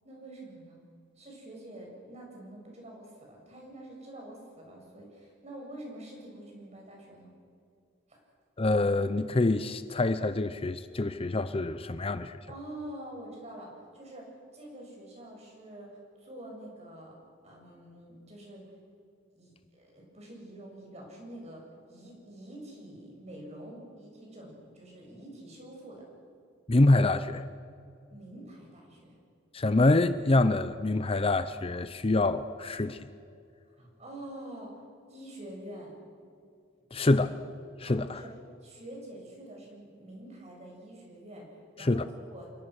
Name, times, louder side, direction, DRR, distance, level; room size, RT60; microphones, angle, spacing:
voice 1, 0.0-0.8 1.2-7.3 8.1-8.2 12.5-14.3 14.5-17.1 17.4-18.6 19.4-21.6 21.9-26.0 28.1-29.2 33.8-34.7 35.1-36.0 37.0-37.2 37.8-42.5, right 1 dB, 35° right, -1 dB, 7.7 m, -46 dB
voice 2, 8.6-12.3 26.7-27.4 29.5-33.0 36.9-37.3 37.8-38.2 41.8-42.1, left 2 dB, 30° left, 12 dB, 0.7 m, -26 dB
28.5 x 22.0 x 6.5 m, 2.4 s
head